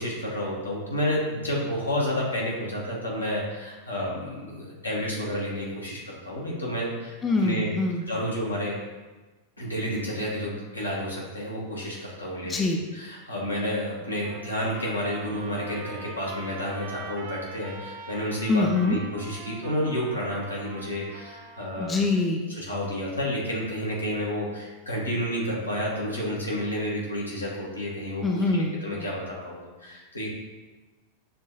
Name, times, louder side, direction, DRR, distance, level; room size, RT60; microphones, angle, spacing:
voice 1, 0.0-7.7 8.1-8.8 9.6-12.6 12.9-22.1 22.6-30.3, equal, 80° left, -4 dB, 1.2 m, -30 dB
voice 2, 7.2-8.1 12.4-12.9 18.5-19.0 21.8-22.5 28.2-29.1, left 3 dB, 20° left, 2 dB, 0.4 m, -24 dB
Trumpet, 14.2-22.0, right 4 dB, 50° right, 0.5 m, -43 dB
6.7 x 2.6 x 2.8 m, 1.2 s
figure-of-eight pair, 90°, 0 cm